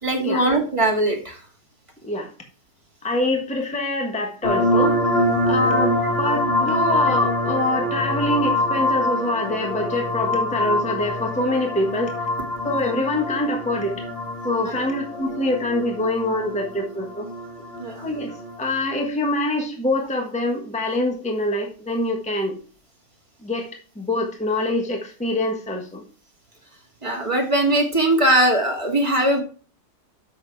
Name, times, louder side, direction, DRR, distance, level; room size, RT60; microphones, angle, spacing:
voice 1, 0.0-1.4 14.6-14.8 17.8-18.0 27.0-29.4, right 1 dB, 20° right, 1 dB, 1.9 m, -20 dB
voice 2, 3.0-12.1 12.6-14.0 14.4-17.3 18.0-22.6 23.4-23.7 23.9-26.0, left 2 dB, 5° left, 2 dB, 1.3 m, -25 dB
sound 1, 4.4-19.0, left 1 dB, 40° left, 1.9 m, -25 dB
7.5 x 6.2 x 4.6 m, 0.38 s
omnidirectional pair, 1.6 m